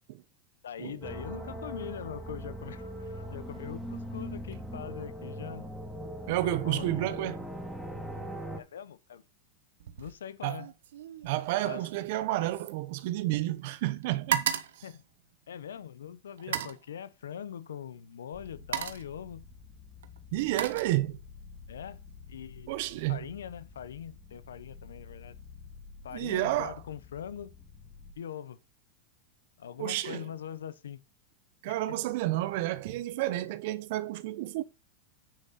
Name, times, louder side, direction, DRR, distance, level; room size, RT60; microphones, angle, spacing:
voice 1, 0.6-5.7 6.4-6.9 8.6-9.2 10.0-10.7 11.6-11.9 14.8-15.0 15.5-19.4 21.7-22.0 22.3-22.7 23.1-25.4 26.0-27.5 28.2-28.6 29.6-31.0 31.7-32.0, left 9 dB, 85° left, 0.9 m, -42 dB
sound 1, 1.0-8.6, equal, ahead, 2.9 m, -40 dB
voice 2, 6.3-7.5 10.4-10.6 11.2-14.5 16.5-16.7 20.3-21.2 22.7-23.2 26.1-26.8 29.8-30.2 31.6-34.6, right 16 dB, 65° right, 1.0 m, -31 dB
sound 2, 9.8-10.2 10.5-13.6 13.9-15.8 16.4-16.9 17.9-18.1 18.5-19.2 20.0-21.4 21.8-22.2, right 10 dB, 80° right, 1.2 m, -36 dB
sound 3, 18.3-28.1, left 5 dB, 15° left, 1.9 m, -51 dB
9.8 x 6.3 x 4.2 m
hypercardioid pair, 110°, 0 cm